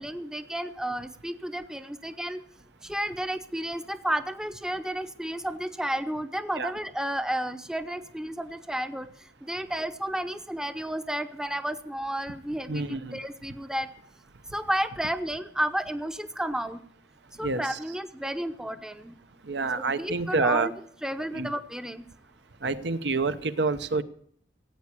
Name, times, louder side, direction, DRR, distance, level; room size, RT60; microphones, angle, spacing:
voice 1, 0.0-2.4 2.8-9.1 9.4-13.9 14.5-16.8 17.4-19.1 19.8-20.7 21.0-22.0, right 1 dB, 5° right, 10 dB, 0.7 m, -32 dB
voice 2, 12.7-13.2 17.4-17.8 19.5-20.7 21.3-21.5 22.6-24.0, right 3 dB, 70° right, 11 dB, 0.9 m, -27 dB
16.0 x 8.5 x 8.2 m, 0.64 s
head